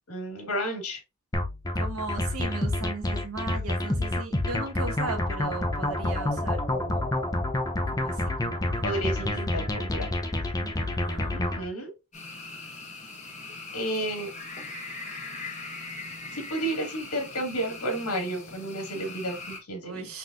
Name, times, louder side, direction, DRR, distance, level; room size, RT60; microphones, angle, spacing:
voice 1, 0.1-1.0 8.8-10.1 11.3-11.9 13.7-14.3 16.3-20.0, right 1 dB, 85° left, 2.0 m, -32 dB
sound 1, 1.3-11.6, left 1 dB, 15° left, 0.6 m, -28 dB
voice 2, 1.7-7.1 7.9-9.3 10.5-11.5 19.8-20.2, right 3 dB, 75° right, 1.1 m, -38 dB
sound 2, 12.1-19.6, left 3 dB, 30° left, 1.3 m, -40 dB
5.7 x 3.1 x 2.5 m
head